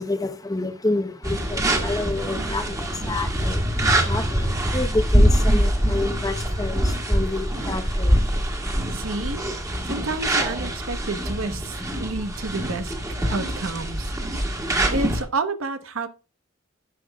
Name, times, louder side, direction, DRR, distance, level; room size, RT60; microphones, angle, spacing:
voice 1, 0.0-3.6 4.1-4.4 4.7-6.8 7.1-8.1, left 2 dB, 20° left, 0.8 m, -28 dB
sound 1, 1.2-15.2, right 1 dB, 15° right, 1.7 m, -24 dB
voice 2, 8.9-9.4 9.8-14.1 14.9-16.1, right 3 dB, 85° right, 1.0 m, -30 dB
11.0 x 6.7 x 2.2 m
head